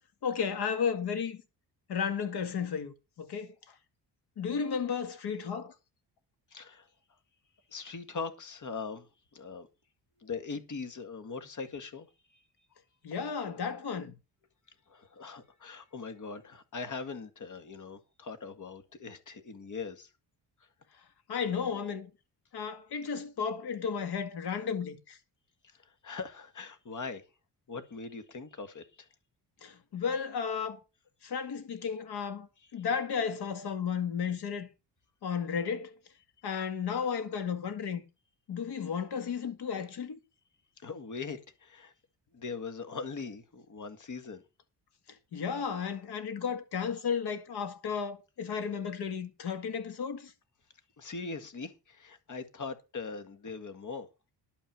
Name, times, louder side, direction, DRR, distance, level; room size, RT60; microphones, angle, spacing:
voice 1, 0.2-1.4 1.9-3.5 4.4-5.7 13.0-14.1 21.3-22.1 22.5-25.2 29.6-30.8 31.2-32.5 32.7-34.7 35.2-35.9 36.4-38.0 38.5-40.2 45.3-50.3, left 6 dB, 70° left, 2.1 m, -33 dB
voice 2, 6.5-6.9 7.7-9.7 10.2-12.1 14.9-20.1 25.7-27.2 27.7-29.1 32.6-32.9 40.8-41.9 42.3-44.4 51.0-54.1, left 4 dB, 45° left, 1.9 m, -41 dB
11.0 x 5.6 x 7.6 m
cardioid pair, 80°, 41 cm